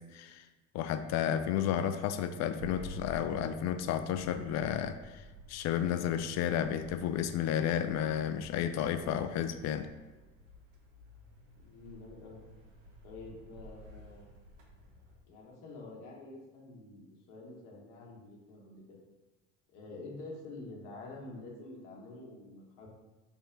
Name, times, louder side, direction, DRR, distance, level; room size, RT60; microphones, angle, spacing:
voice 1, 0.1-0.4 0.7-5.2 5.5-9.9, left 9 dB, 50° left, 10 dB, 0.5 m, -32 dB
sound 1, 2.6-15.2, equal, 60° right, 1.1 m, -52 dB
voice 2, 11.6-12.4 13.0-14.3 15.3-19.0 19.7-22.9, left 2 dB, 65° left, -2 dB, 1.3 m, -48 dB
3.3 x 2.9 x 4.5 m, 1.2 s
hypercardioid pair, 70°, 36 cm